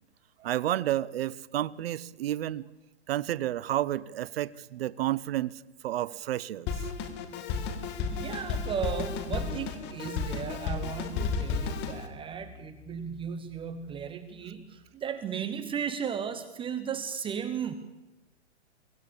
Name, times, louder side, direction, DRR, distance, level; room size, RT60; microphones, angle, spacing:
voice 1, 0.4-2.7 3.1-6.7, right 13 dB, 55° right, 0.8 m, -31 dB
Drum kit, 6.7-12.1, left 5 dB, 30° left, 2.3 m, -33 dB
voice 2, 7.8-17.7, right 7 dB, 15° right, 0.9 m, -35 dB
sound 1, 9.1-15.7, left 2 dB, 10° left, 6.9 m, -55 dB
23.5 x 16.5 x 7.2 m
hypercardioid pair, 130°, 35 cm